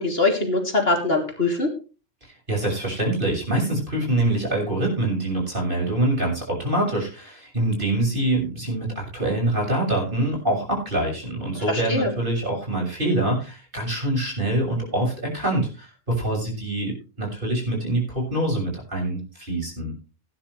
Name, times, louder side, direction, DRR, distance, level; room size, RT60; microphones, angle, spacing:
voice 1, 0.0-1.7 11.7-12.1, left 2 dB, 55° left, 2 dB, 3.5 m, -22 dB
voice 2, 2.5-19.9, right 1 dB, 45° right, -1 dB, 7.1 m, -25 dB
18.5 x 10.5 x 3.3 m, 0.34 s
omnidirectional pair, 1.3 m